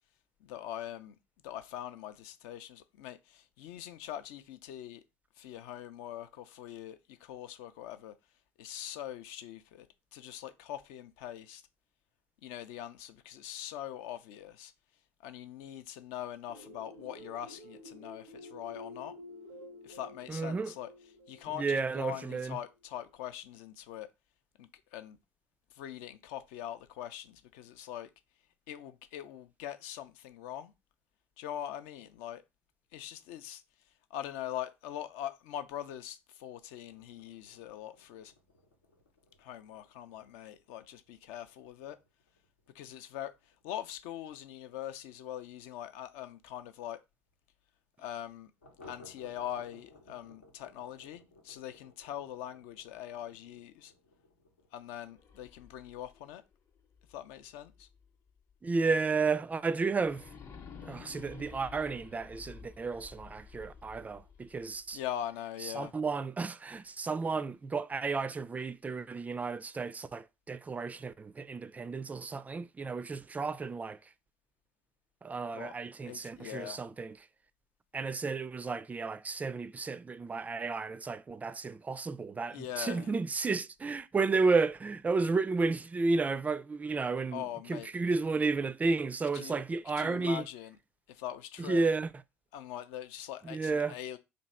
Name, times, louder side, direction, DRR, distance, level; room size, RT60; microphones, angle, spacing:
voice 1, 0.4-1.1 1.4-5.0 5.4-8.1 8.6-9.9 10.1-11.6 12.4-14.7 15.2-19.1 19.8-24.1 24.6-25.2 25.7-28.1 28.7-30.7 31.4-32.4 32.9-33.6 34.1-38.3 39.4-42.0 42.7-43.3 43.6-47.0 48.0-48.5 48.9-53.9 54.7-56.4 57.1-57.9 64.9-65.9 75.5-75.7 76.0-76.8 82.5-83.1 87.3-87.9 89.3-89.6 89.9-90.8 91.1-91.9 92.5-94.2, left 11 dB, 65° left, 0.5 m, -42 dB
sound 1, 16.5-23.1, left 1 dB, 80° right, 0.6 m, -51 dB
voice 2, 20.3-20.7 21.5-22.6 58.6-60.3 60.8-65.0 65.6-74.1 75.2-77.2 77.9-87.4 87.7-90.4 91.6-92.1 93.4-94.0, right 4 dB, 20° right, 0.3 m, -32 dB
sound 2, 36.9-46.1 46.4-46.5 46.8-46.9 47.3-47.4 48.6-55.3, left 2 dB, 90° left, 0.9 m, -60 dB
sound 3, 55.1-58.1 58.5-58.6 60.0-65.1, left 5 dB, 40° left, 0.7 m, -52 dB
3.0 x 2.6 x 4.2 m
hypercardioid pair, 60°, 7 cm